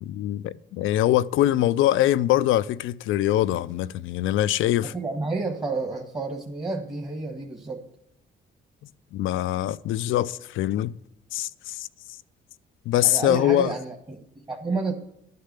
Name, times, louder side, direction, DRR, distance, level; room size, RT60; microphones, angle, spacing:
voice 1, 0.0-4.9 9.1-11.0 11.3-11.9 12.9-13.7, left 13 dB, 85° left, 0.5 m, -23 dB
voice 2, 4.8-7.8 13.0-14.9, right 3 dB, 20° right, 1.5 m, -30 dB
11.0 x 6.7 x 8.3 m
cardioid pair, 90°, 20 cm